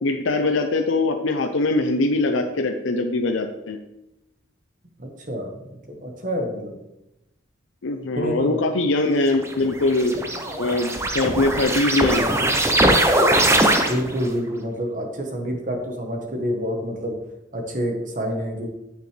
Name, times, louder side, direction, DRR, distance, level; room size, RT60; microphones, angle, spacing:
voice 1, 0.0-3.8 7.8-10.1 10.6-12.3, left 2 dB, 75° left, 4 dB, 0.6 m, -22 dB
voice 2, 5.0-6.8 8.2-8.6 10.8-11.1 13.9-17.2 17.5-18.7, equal, 40° right, 3 dB, 1.2 m, -28 dB
sound 1, 9.3-14.3, right 1 dB, 15° right, 0.6 m, -21 dB
9.6 x 6.5 x 3.3 m, 0.92 s
head